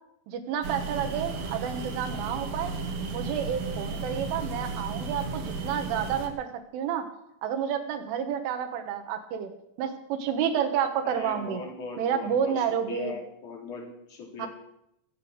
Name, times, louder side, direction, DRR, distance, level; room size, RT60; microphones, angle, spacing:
voice 1, 0.3-2.7 3.1-7.1 7.4-9.5 9.8-11.6 12.0-13.2 14.4-14.5, right 8 dB, 90° right, 6 dB, 4.0 m, -30 dB
sound 1, 0.6-6.3, right 3 dB, 60° right, 3.1 m, -34 dB
voice 2, 11.0-14.5, left 3 dB, 45° left, -1 dB, 4.9 m, -39 dB
21.5 x 8.1 x 6.6 m, 0.79 s
omnidirectional pair, 5.5 m